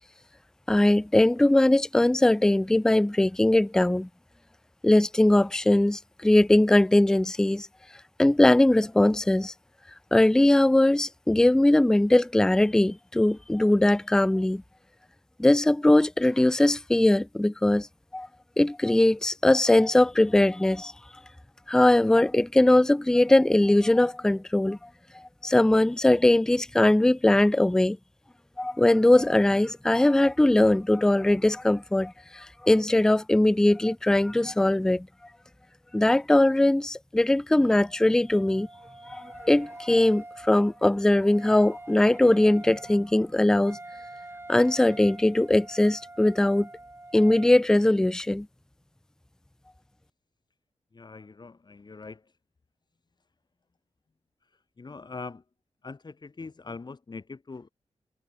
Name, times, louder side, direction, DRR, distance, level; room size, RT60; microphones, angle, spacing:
voice 1, 0.7-4.1 4.8-7.7 8.2-9.5 10.1-14.6 15.4-17.9 18.1-18.3 18.6-20.9 21.7-24.8 25.1-28.0 28.6-35.1 35.9-38.7 39.1-43.8 44.5-46.7 47.1-48.5, left 1 dB, 5° left, 0.4 m, -21 dB
Wind instrument woodwind instrument, 37.6-47.6, right 2 dB, 20° right, 4.6 m, -46 dB
voice 2, 50.9-52.2 54.8-55.4 55.8-57.7, left 4 dB, 35° left, 1.2 m, -42 dB
wide cardioid pair, 85°, 12 cm